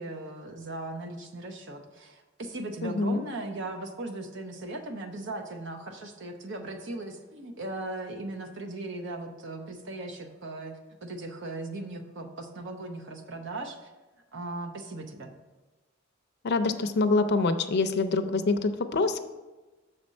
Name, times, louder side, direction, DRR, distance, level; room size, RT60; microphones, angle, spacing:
voice 1, 0.0-13.9 14.3-15.3, right 2 dB, 60° right, 5 dB, 0.8 m, -38 dB
voice 2, 2.8-3.2 16.4-19.2, left 3 dB, 55° left, 9 dB, 0.5 m, -25 dB
6.5 x 4.3 x 6.3 m, 1.2 s
head